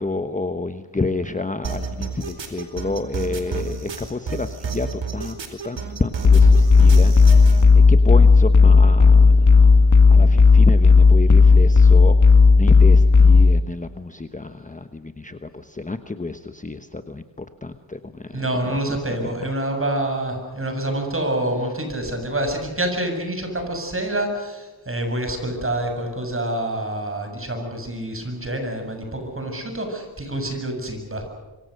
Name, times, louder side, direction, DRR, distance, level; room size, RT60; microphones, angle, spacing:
voice 1, 0.0-5.4 5.6-7.5 7.9-18.4, left 3 dB, 15° left, 9 dB, 1.1 m, -30 dB
sound 1, 1.6-7.6, right 5 dB, 65° right, 4.5 m, -30 dB
sound 2, 6.2-13.6, left 4 dB, 40° left, 1.3 m, -12 dB
voice 2, 18.3-31.3, right 1 dB, 25° right, 4 dB, 7.3 m, -27 dB
26.5 x 24.0 x 6.6 m, 1.2 s
wide cardioid pair, 100°, 47 cm